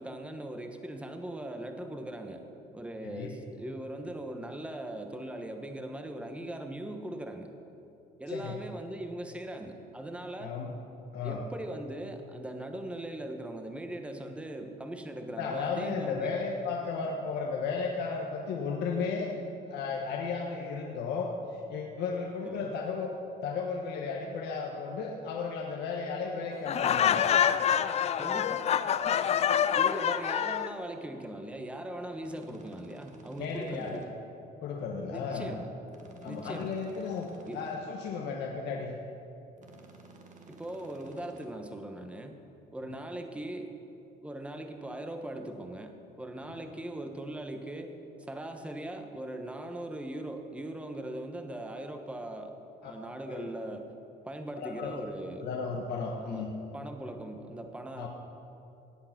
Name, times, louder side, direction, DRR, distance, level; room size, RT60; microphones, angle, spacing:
voice 1, 0.0-2.5 2.7-7.5 8.2-10.5 11.2-16.4 22.4-22.7 28.1-28.7 29.7-34.1 35.1-35.7 36.2-36.8 37.4-37.7 40.5-42.4 42.7-43.7 44.2-52.5 52.8-53.9 54.2-55.5 56.2-58.1, right 1 dB, 5° right, 5 dB, 1.1 m, -40 dB
voice 2, 8.3-8.6 10.4-10.7 11.1-11.4 15.4-19.3 19.7-23.1 23.4-27.3 32.5-32.6 33.4-34.0 34.6-35.5 36.2-38.9 52.8-52.9 53.3-53.5 54.6-54.9 55.4-56.5 57.9-58.1, left 5 dB, 80° left, 0 dB, 1.3 m, -34 dB
Laughter, 26.7-30.7, left 9 dB, 40° left, 0.4 m, -26 dB
sound 1, 32.2-34.1 35.9-37.8 39.6-41.5, right 3 dB, 45° right, 1.7 m, -53 dB
17.5 x 8.6 x 5.9 m, 2.8 s
cardioid pair, 110°, 17 cm